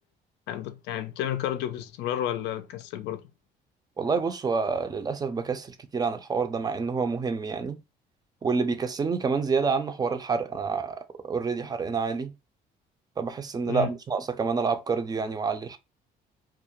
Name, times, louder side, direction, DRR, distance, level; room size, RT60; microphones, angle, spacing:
voice 1, 0.5-3.2 13.7-13.9, left 11 dB, 80° left, 0.4 m, -31 dB
voice 2, 4.0-7.8 8.4-12.3 13.2-15.8, right 5 dB, 25° right, 0.4 m, -28 dB
2.3 x 2.1 x 2.8 m
cardioid pair, 110°, 17 cm